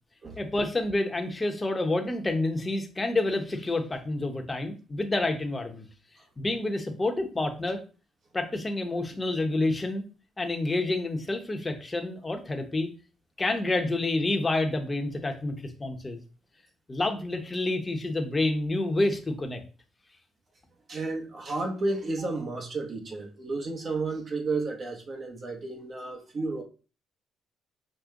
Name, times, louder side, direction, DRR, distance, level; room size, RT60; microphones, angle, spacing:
voice 1, 0.4-5.8 6.4-7.8 8.3-10.0 10.4-12.9 13.4-16.2 16.9-19.6, left 2 dB, 20° left, 0.8 m, -28 dB
voice 2, 20.9-26.6, right 3 dB, 45° right, 0.9 m, -32 dB
5.0 x 2.1 x 3.7 m
cardioid pair, 90°, 0 cm